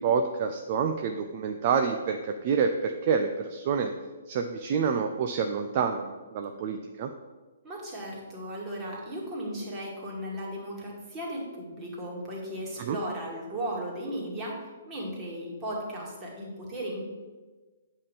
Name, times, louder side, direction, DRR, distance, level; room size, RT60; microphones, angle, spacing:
voice 1, 0.0-3.9 4.3-7.1 12.8-13.0, right 6 dB, 40° right, 5 dB, 0.5 m, -28 dB
voice 2, 7.6-17.1, equal, 20° right, -3 dB, 2.2 m, -36 dB
8.5 x 3.8 x 6.6 m, 1.3 s
figure-of-eight pair, 125°, 0 cm